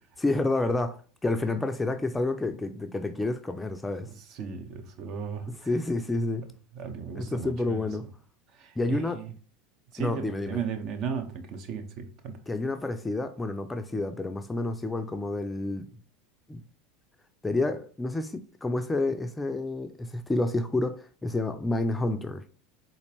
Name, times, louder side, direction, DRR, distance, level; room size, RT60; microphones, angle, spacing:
voice 1, 0.2-4.1 5.5-6.5 7.1-8.0 8.8-9.2 10.0-10.6 12.5-15.9 16.5-16.6 17.4-22.4, left 2 dB, 10° left, 0.4 m, -29 dB
voice 2, 4.0-5.5 6.7-7.9 8.5-9.3 9.9-12.4, right 6 dB, 50° right, 0.7 m, -36 dB
3.9 x 2.5 x 3.4 m
hypercardioid pair, 85°, 0 cm